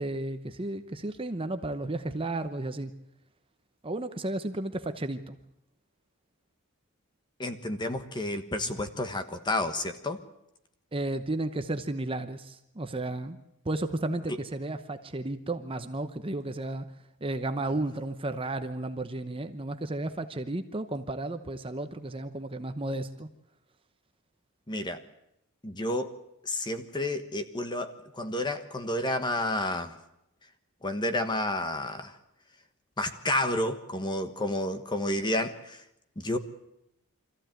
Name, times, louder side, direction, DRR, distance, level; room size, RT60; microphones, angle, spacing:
voice 1, 0.0-2.9 3.8-5.4 10.9-13.4 13.6-16.9 17.2-23.3, right 2 dB, 25° right, 8 dB, 0.8 m, -33 dB
voice 2, 7.4-10.2 24.7-25.0 25.6-26.1 26.4-29.9 30.8-32.1 33.0-35.8 36.2-36.4, left 1 dB, 20° left, 9 dB, 1.3 m, -30 dB
24.5 x 14.5 x 9.1 m, 0.84 s
head